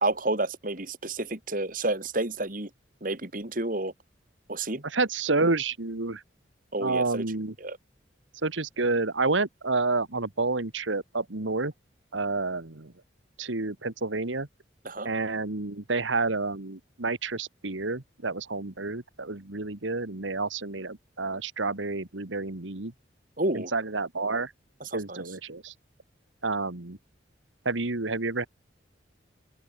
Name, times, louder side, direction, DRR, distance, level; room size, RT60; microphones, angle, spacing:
voice 1, 0.0-2.7 3.0-3.9 4.5-4.8 6.7-7.2 7.6-7.8 14.8-15.1 23.4-23.7 24.9-25.2, right 2 dB, 45° right, 2.8 m, -30 dB
voice 2, 4.8-6.2 6.8-7.6 8.4-11.7 12.1-12.9 13.4-14.5 15.1-22.9 23.5-24.5 24.9-25.7 26.4-27.0 27.7-28.5, right 3 dB, 80° right, 1.8 m, -29 dB
open air
head